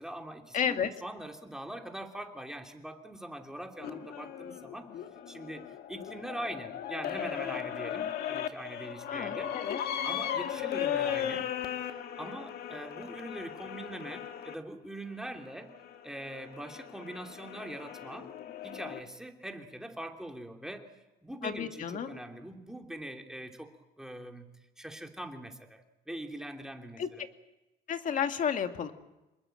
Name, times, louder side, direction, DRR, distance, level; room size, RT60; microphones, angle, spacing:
voice 1, 0.0-4.9 5.3-9.5 10.0-11.5 12.2-15.7 16.0-18.3 18.6-24.5 24.8-27.2, right 1 dB, 5° right, 3 dB, 2.9 m, -42 dB
voice 2, 0.5-0.9 9.1-9.8 21.4-22.2 27.0-27.1 27.9-28.9, left 8 dB, 50° left, 6 dB, 2.2 m, -31 dB
sound 1, 3.8-14.5 15.3-19.0, left 10 dB, 65° left, 1.9 m, -37 dB
27.0 x 21.5 x 7.8 m, 1.0 s
cardioid pair, 110°, 17 cm